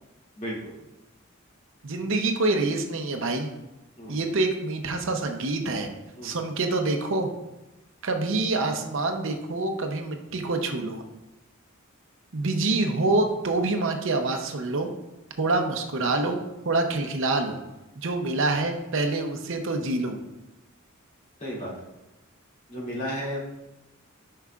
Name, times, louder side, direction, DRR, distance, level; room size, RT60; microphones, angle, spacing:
voice 1, 0.4-0.7 4.0-4.3 6.2-6.4 21.4-21.7 22.7-23.4, equal, 35° left, -6 dB, 2.5 m, -33 dB
voice 2, 1.8-3.5 4.1-5.9 6.2-7.3 8.0-11.0 12.3-14.9 15.4-16.4 16.6-17.6 18.0-20.2, right 2 dB, 65° right, 4 dB, 0.7 m, -26 dB
9.4 x 5.5 x 2.4 m, 1.0 s
head